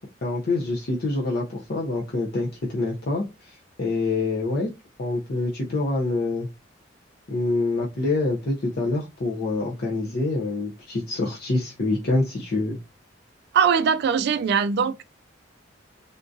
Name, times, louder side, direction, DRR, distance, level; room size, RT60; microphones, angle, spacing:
voice 1, 0.2-4.7 5.0-6.5 7.3-12.8, left 2 dB, 55° left, 0.6 m, -26 dB
voice 2, 13.5-15.0, right 7 dB, 60° right, 0.3 m, -21 dB
3.6 x 2.4 x 2.6 m
head